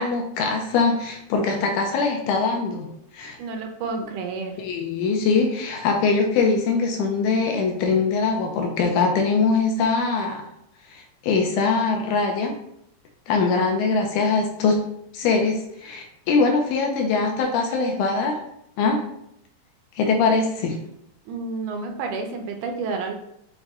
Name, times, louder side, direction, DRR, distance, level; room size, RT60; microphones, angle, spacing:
voice 1, 0.0-2.9 3.1-3.4 4.6-10.4 10.9-12.5 13.3-14.8 15.1-18.4 18.8-19.0 20.0-20.8, left 4 dB, 80° left, 2 dB, 1.9 m, -22 dB
voice 2, 3.4-4.6 21.3-23.1, right 4 dB, 80° right, 4 dB, 2.0 m, -30 dB
6.0 x 2.2 x 3.5 m, 0.76 s
omnidirectional pair, 3.8 m